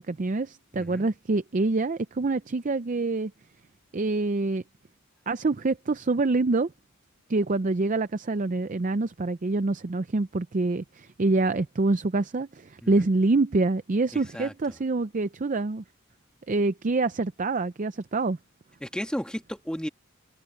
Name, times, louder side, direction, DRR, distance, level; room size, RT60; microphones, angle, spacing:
voice 1, 0.0-3.3 3.9-4.6 5.3-6.7 7.3-15.8 16.5-18.4, right 3 dB, 35° right, 0.5 m, -26 dB
voice 2, 0.7-1.1 12.8-13.1 14.1-14.5 18.8-19.9, equal, 5° left, 1.9 m, -34 dB
open air
head